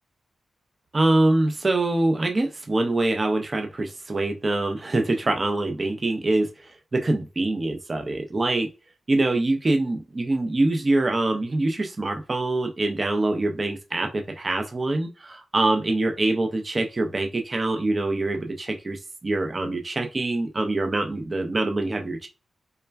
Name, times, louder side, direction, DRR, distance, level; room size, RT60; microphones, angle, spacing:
voice 1, 0.9-6.5 6.9-8.7 9.1-22.3, right 2 dB, 40° right, 4 dB, 0.5 m, -24 dB
3.3 x 2.2 x 2.2 m, 0.31 s
cardioid pair, 60°, 0 cm